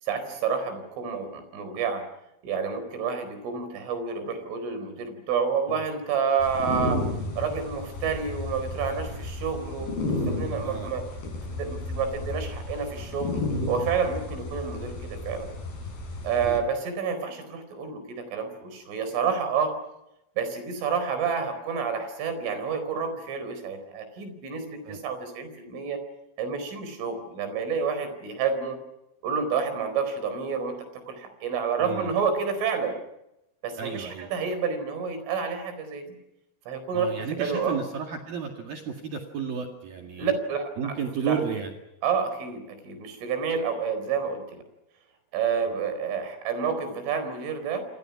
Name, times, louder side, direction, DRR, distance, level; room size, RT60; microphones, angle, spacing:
voice 1, 0.0-2.0 2.4-7.1 7.4-10.0 10.3-11.1 11.5-15.5 16.2-19.8 20.4-26.0 26.4-28.8 29.2-33.0 33.6-36.2 36.7-37.8 40.2-41.0 41.2-41.4 42.0-44.6 45.3-47.9, right 6 dB, 80° right, 9 dB, 7.0 m, -29 dB
sound 1, 6.4-16.6, left 2 dB, 50° left, 7.6 m, -33 dB
voice 2, 31.8-32.1 33.8-34.3 36.9-40.3 40.8-41.7, right 6 dB, 55° right, 3 dB, 3.5 m, -32 dB
28.0 x 27.0 x 6.0 m, 0.86 s
omnidirectional pair, 5.5 m